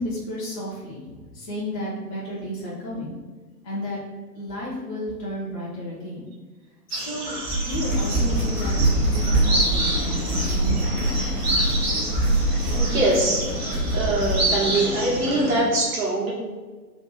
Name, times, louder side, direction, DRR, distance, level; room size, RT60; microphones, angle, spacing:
voice 1, 0.0-3.2 3.6-4.0 4.3-6.3 6.9-7.3 7.6-11.1, equal, 20° left, -8 dB, 0.7 m, -32 dB
sound 1, 6.9-15.6, right 1 dB, 40° right, 1.0 m, -29 dB
sound 2, 7.3-14.5, right 2 dB, 15° right, 0.7 m, -24 dB
sound 3, 7.8-15.8, left 3 dB, 70° left, 0.6 m, -33 dB
voice 2, 12.7-16.3, right 2 dB, 55° right, -4 dB, 1.3 m, -24 dB
3.0 x 2.5 x 3.6 m, 1.4 s
figure-of-eight pair, 120°, 49 cm